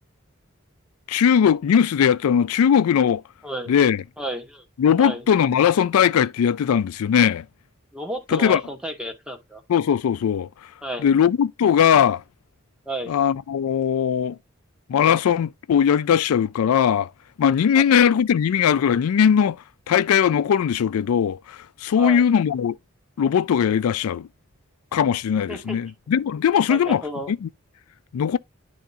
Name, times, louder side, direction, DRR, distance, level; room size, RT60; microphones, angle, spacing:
voice 1, 1.1-3.2 3.7-4.0 4.8-7.5 8.3-8.6 9.7-10.5 11.0-12.2 13.1-14.4 14.9-17.1 17.4-22.8 23.2-24.3 24.9-27.0 27.3-27.5 28.1-28.4, left 8 dB, 90° left, 0.3 m, -19 dB
voice 2, 3.4-3.8 4.2-4.6 5.0-5.2 7.9-9.6 10.8-11.1 12.9-13.1 17.7-17.8 22.0-22.3 25.5-25.8 26.7-27.3, right 1 dB, 5° right, 1.0 m, -32 dB
10.5 x 3.5 x 2.7 m
head